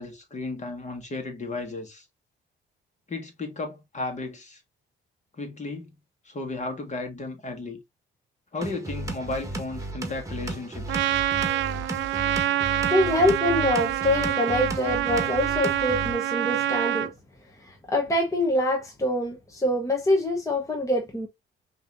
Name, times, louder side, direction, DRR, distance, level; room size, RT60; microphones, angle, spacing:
voice 1, 0.0-2.1 3.1-4.6 5.4-5.9 6.2-7.8 8.5-11.1, left 3 dB, 35° left, 1.7 m, -34 dB
sound 1, 8.6-16.1, right 2 dB, 15° right, 1.4 m, -34 dB
Trumpet, 10.9-17.1, right 12 dB, 70° right, 0.4 m, -26 dB
voice 2, 12.8-17.1 17.6-21.3, left 1 dB, 15° left, 1.1 m, -25 dB
5.3 x 2.9 x 2.6 m
cardioid pair, 90°, 20 cm